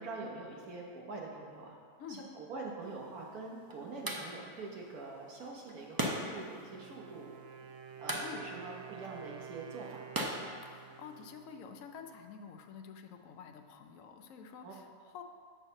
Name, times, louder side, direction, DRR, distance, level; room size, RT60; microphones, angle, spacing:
voice 1, 0.0-1.8 2.1-7.3 8.0-10.2 14.6-14.7, right 3 dB, 80° right, -1 dB, 1.5 m, -44 dB
sound 1, 2.8-11.3, right 1 dB, 25° right, 0.5 m, -42 dB
Wind instrument woodwind instrument, 6.6-12.3, right 8 dB, 65° right, 0.6 m, -51 dB
voice 2, 10.6-15.2, left 6 dB, 70° left, 5 dB, 1.0 m, -49 dB
8.0 x 4.4 x 6.4 m, 2.2 s
omnidirectional pair, 1.5 m